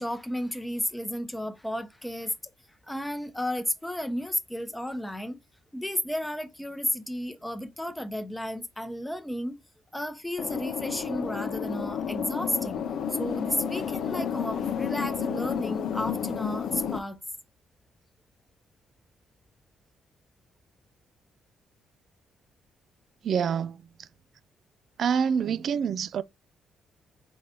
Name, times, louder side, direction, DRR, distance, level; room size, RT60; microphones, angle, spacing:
voice 1, 0.0-2.3 2.9-5.4 5.7-9.6 9.9-12.8 13.1-17.2, left 1 dB, 5° left, 0.8 m, -33 dB
sound 1, 10.4-17.0, left 7 dB, 70° left, 0.5 m, -31 dB
voice 2, 23.2-24.1 25.0-26.2, right 7 dB, 60° right, 0.3 m, -27 dB
4.7 x 3.9 x 2.8 m
cardioid pair, 90°, 0 cm